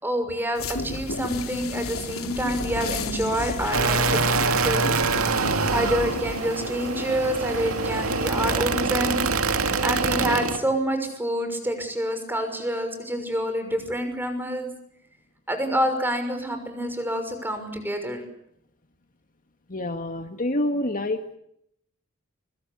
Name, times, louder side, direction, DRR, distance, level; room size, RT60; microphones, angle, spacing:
voice 1, 0.0-4.9 5.7-9.2 9.6-14.7 15.5-18.2, equal, 10° right, 7 dB, 6.0 m, -27 dB
sound 1, 0.6-8.6, left 2 dB, 80° left, 3.5 m, -33 dB
sound 2, 3.7-10.6, right 4 dB, 80° right, 2.4 m, -25 dB
voice 2, 19.7-21.4, left 1 dB, 40° left, 7 dB, 1.9 m, -27 dB
25.0 x 24.0 x 8.5 m, 0.72 s
head